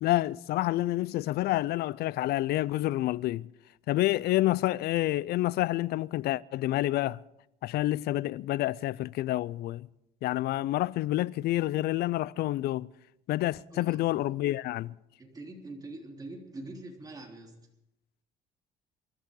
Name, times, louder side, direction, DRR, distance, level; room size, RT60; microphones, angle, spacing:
voice 1, 0.0-3.5 3.9-7.2 7.6-9.9 10.2-12.9 13.3-14.9, left 16 dB, 70° left, 0.5 m, -28 dB
voice 2, 15.2-17.6, right 2 dB, 20° right, 3.5 m, -44 dB
25.5 x 13.0 x 3.8 m
cardioid pair, 110°, 17 cm